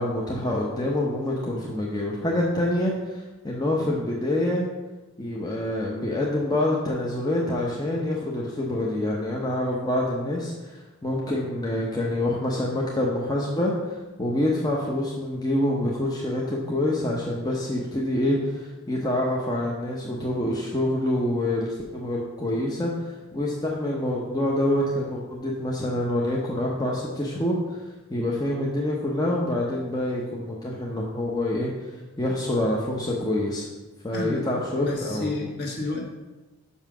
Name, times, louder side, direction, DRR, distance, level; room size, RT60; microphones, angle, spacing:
voice 1, 0.0-4.7 5.2-27.8 28.1-33.7 34.0-35.3, left 1 dB, 15° left, -3 dB, 0.8 m, -26 dB
voice 2, 34.1-34.4 34.8-36.0, left 2 dB, 50° left, 0 dB, 1.6 m, -30 dB
5.6 x 5.6 x 6.1 m, 1.1 s
head